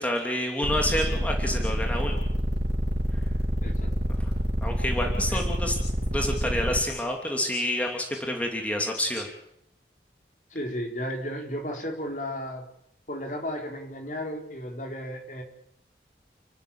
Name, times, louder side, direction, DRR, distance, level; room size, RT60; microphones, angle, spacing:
voice 1, 0.0-2.2 4.2-4.3 4.6-5.7 6.1-9.3, left 1 dB, 10° left, 1 dB, 3.0 m, -28 dB
sound 1, 0.6-6.8, equal, 75° right, 3.9 m, -27 dB
voice 2, 10.5-12.6 13.1-15.4, equal, 45° left, 2 dB, 4.6 m, -34 dB
30.0 x 13.0 x 8.9 m, 0.77 s
head